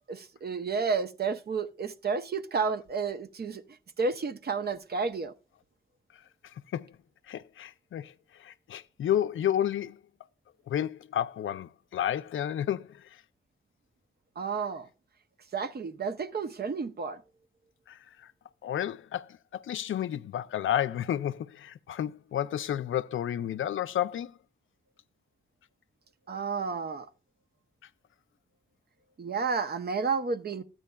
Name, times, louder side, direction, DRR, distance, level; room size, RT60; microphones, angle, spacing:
voice 1, 0.1-3.6 4.0-5.3 14.4-14.9 15.5-17.2 26.3-27.1 29.2-30.6, right 5 dB, 50° right, 0.7 m, -31 dB
voice 2, 7.3-8.1 8.4-10.0 10.7-12.9 17.9-18.0 18.6-24.3, left 10 dB, 75° left, 0.4 m, -31 dB
13.0 x 9.0 x 2.2 m
cardioid pair, 75°, 21 cm